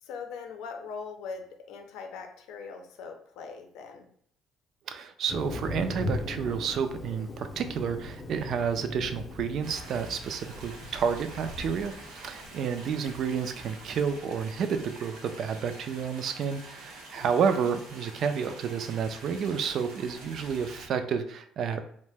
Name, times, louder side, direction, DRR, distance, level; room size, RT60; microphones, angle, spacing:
voice 1, 0.0-4.1 10.5-10.7 12.7-12.8 17.1-17.4, left 5 dB, 80° left, 4 dB, 0.5 m, -41 dB
voice 2, 4.9-21.8, right 6 dB, 55° right, 9 dB, 0.3 m, -30 dB
Thunder, 5.3-14.0, left 2 dB, 35° left, 0.6 m, -39 dB
sound 1, 9.6-20.9, right 2 dB, 85° right, 0.7 m, -47 dB
2.7 x 2.1 x 3.3 m, 0.63 s
cardioid pair, 115°, 0 cm